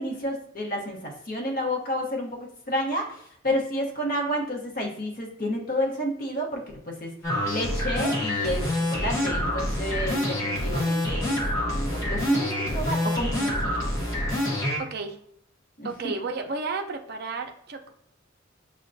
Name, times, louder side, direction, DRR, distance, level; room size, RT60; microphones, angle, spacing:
voice 1, 0.0-7.1 7.4-11.4 11.6-13.7 15.8-16.1, equal, 45° left, 0 dB, 0.9 m, -30 dB
sound 1, 7.2-14.8, left 1 dB, 15° left, 0.9 m, -27 dB
voice 2, 14.8-15.2 15.8-17.9, right 4 dB, 50° right, 4 dB, 0.4 m, -32 dB
6.3 x 2.2 x 2.6 m, 0.70 s
head